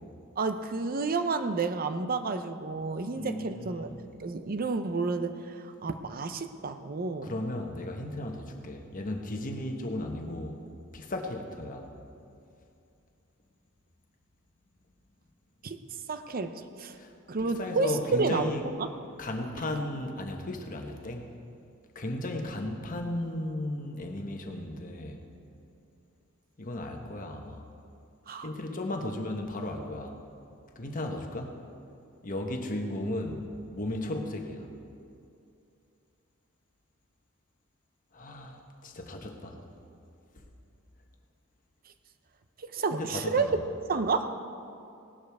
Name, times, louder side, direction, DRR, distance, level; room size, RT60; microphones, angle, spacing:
voice 1, 0.4-3.9 4.2-7.3 15.6-15.8 16.1-17.0 17.3-18.9 28.3-28.5 42.6-43.5 43.9-44.4, right 4 dB, 45° right, 9 dB, 0.6 m, -30 dB
voice 2, 3.2-4.0 7.2-10.6 10.9-11.9 17.0-17.1 17.4-18.7 19.2-21.3 21.9-25.3 26.6-27.6 28.4-30.2 30.8-31.6 32.2-34.7 38.1-39.6 42.9-43.6, left 1 dB, 40° left, 3 dB, 1.2 m, -35 dB
18.0 x 11.5 x 3.5 m, 2.6 s
head